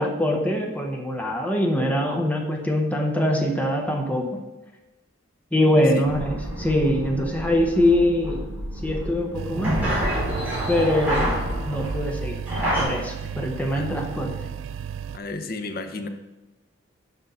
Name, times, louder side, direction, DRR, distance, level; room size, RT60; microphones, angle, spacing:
voice 1, 0.0-4.4 5.5-8.5 8.8-9.8 10.7-12.4 12.8-14.5, left 1 dB, 10° left, 2 dB, 0.9 m, -23 dB
sound 1, 6.1-12.8, equal, 10° right, 2.7 m, -28 dB
sound 2, 9.3-15.2, right 8 dB, 85° right, 0.3 m, -34 dB
voice 2, 15.1-16.1, left 3 dB, 50° left, 7 dB, 0.7 m, -33 dB
6.5 x 5.5 x 5.5 m, 1.1 s
head